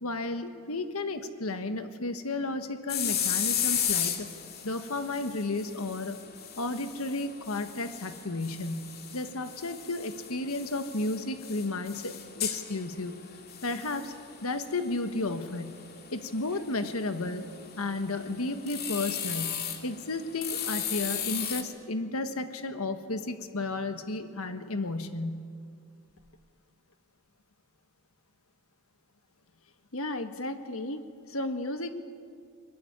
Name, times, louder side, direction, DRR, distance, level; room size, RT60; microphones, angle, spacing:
voice 1, 0.0-4.3 4.6-6.2 6.6-13.2 13.6-14.1 14.4-15.8 16.1-17.5 17.8-25.4, left 2 dB, 90° left, 8 dB, 1.5 m, -33 dB
sound 1, 2.9-21.6, left 8 dB, 45° left, 2.2 m, -36 dB
voice 2, 29.9-31.9, left 1 dB, 70° left, 7 dB, 1.7 m, -34 dB
22.5 x 22.0 x 9.9 m, 2.2 s
head